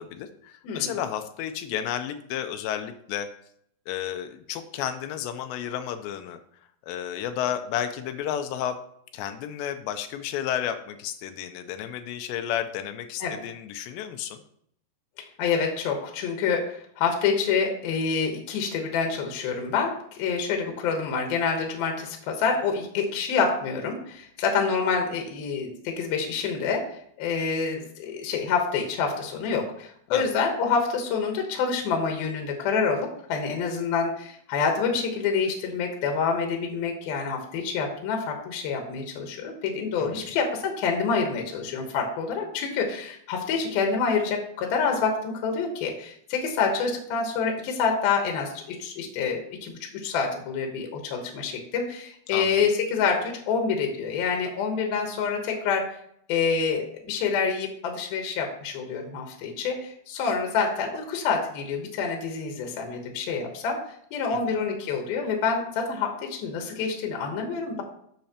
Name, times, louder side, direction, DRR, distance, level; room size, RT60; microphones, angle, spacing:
voice 1, 0.0-3.3 3.9-6.4 6.8-8.8 9.1-14.4 30.1-30.3 40.0-40.3 52.3-52.6 64.3-64.4, left 10 dB, 85° left, 8 dB, 2.8 m, -32 dB
voice 2, 15.4-26.8 27.2-55.9 56.3-63.8 64.1-67.8, left 5 dB, 70° left, 3 dB, 2.7 m, -27 dB
10.5 x 6.8 x 2.9 m, 0.68 s
omnidirectional pair, 5.0 m